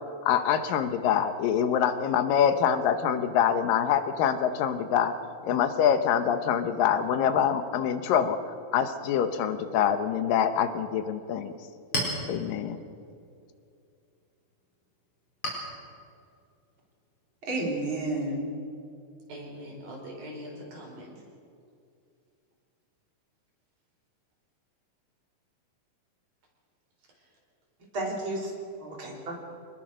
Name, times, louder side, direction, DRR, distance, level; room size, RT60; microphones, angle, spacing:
voice 1, 0.3-5.1 5.4-8.4 8.7-11.5 12.3-12.8, left 8 dB, 80° left, 9 dB, 2.7 m, -25 dB
Chink clink, 11.4-18.5, equal, 35° left, 5.1 m, -39 dB
voice 2, 17.4-18.5 27.9-28.5 28.8-29.3, right 2 dB, 35° right, -1 dB, 4.3 m, -31 dB
voice 3, 19.3-21.2 27.1-27.4, equal, 85° right, -1 dB, 6.7 m, -43 dB
25.0 x 19.5 x 6.4 m, 2.4 s
omnidirectional pair, 4.0 m